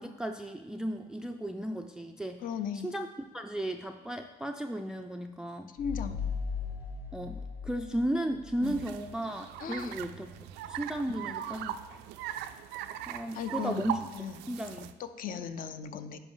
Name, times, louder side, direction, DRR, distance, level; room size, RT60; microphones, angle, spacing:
voice 1, 0.0-2.4 2.8-3.1 3.3-5.7 7.1-11.7 13.1-14.0 14.5-14.9, right 1 dB, 5° right, 5 dB, 0.3 m, -35 dB
voice 2, 2.4-2.9 5.8-6.2 8.6-8.8 9.6-10.0 13.3-13.9 14.1-14.3 15.0-16.2, left 7 dB, 55° left, 10 dB, 0.5 m, -36 dB
sound 1, 5.8-9.1, left 6 dB, 80° left, 1.3 m, -38 dB
sound 2, 8.6-14.9, right 11 dB, 85° right, 0.4 m, -40 dB
10.0 x 5.3 x 3.9 m, 1.1 s
cardioid pair, 110°, 17 cm